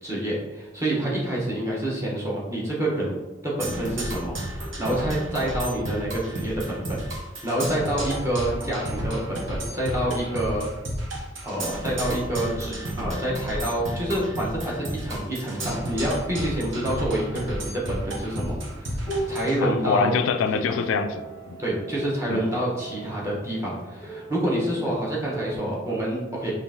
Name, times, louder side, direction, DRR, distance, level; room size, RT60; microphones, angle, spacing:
voice 1, 0.0-3.2 3.4-7.0 7.4-10.7 11.4-20.2 20.5-20.8 21.6-26.5, right 1 dB, 15° right, -5 dB, 1.0 m, -27 dB
Percussion, 3.6-19.6, right 1 dB, 75° right, 1.0 m, -32 dB
sound 1, 18.1-25.6, right 2 dB, 15° left, 0.7 m, -38 dB
voice 2, 19.6-21.6 22.3-22.4, left 5 dB, 85° left, 8 dB, 0.3 m, -25 dB
5.4 x 2.5 x 2.7 m, 1.2 s
head